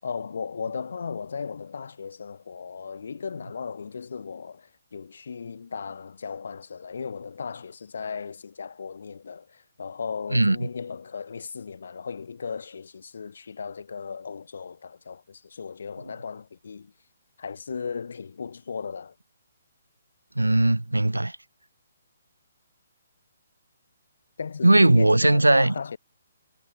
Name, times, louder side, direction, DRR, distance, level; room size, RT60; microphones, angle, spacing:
voice 1, 0.0-16.9 17.4-19.1 24.4-26.0, left 5 dB, 65° left, 7.9 m, -36 dB
voice 2, 10.3-10.7 20.4-21.4 24.6-25.7, right 2 dB, 90° right, 0.5 m, -19 dB
figure-of-eight pair, 135°, 0 cm